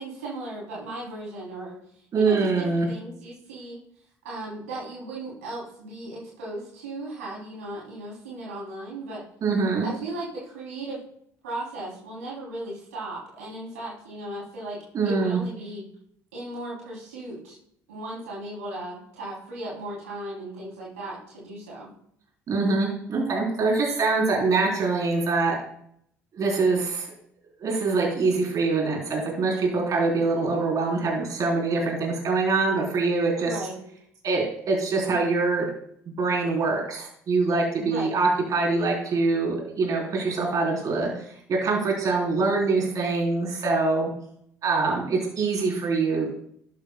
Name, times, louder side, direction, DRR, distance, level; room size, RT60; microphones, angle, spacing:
voice 1, 0.0-1.8 2.1-3.8 4.2-9.2 9.8-11.0 11.4-15.9 16.3-17.6 17.9-21.9 33.4-33.8 37.8-38.2, right 1 dB, 85° right, -5 dB, 3.0 m, -36 dB
voice 2, 2.1-2.9 9.4-9.8 14.9-15.4 22.5-25.6 26.4-27.1 27.6-33.5 34.2-35.7 36.2-44.1 44.6-46.3, right 3 dB, 50° right, -1 dB, 3.6 m, -24 dB
12.0 x 9.1 x 2.2 m, 0.68 s
hypercardioid pair, 55°, 8 cm